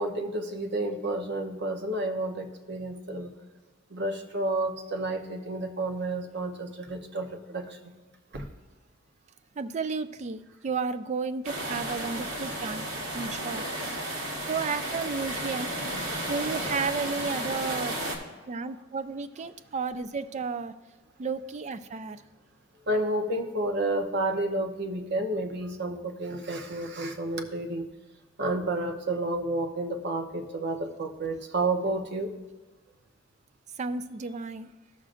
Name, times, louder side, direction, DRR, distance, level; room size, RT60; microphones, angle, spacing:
voice 1, 0.0-3.3 3.9-7.9 8.3-8.4 22.9-27.9 28.4-32.3, right 2 dB, 55° right, 4 dB, 0.9 m, -30 dB
voice 2, 9.6-12.9 13.1-13.7 14.5-15.7 16.3-18.0 18.5-20.7 21.2-22.2 33.8-34.7, right 4 dB, 35° right, 11 dB, 0.4 m, -32 dB
sound 1, 11.4-18.2, right 1 dB, 85° right, 1.6 m, -33 dB
14.5 x 6.3 x 2.5 m, 1.2 s
head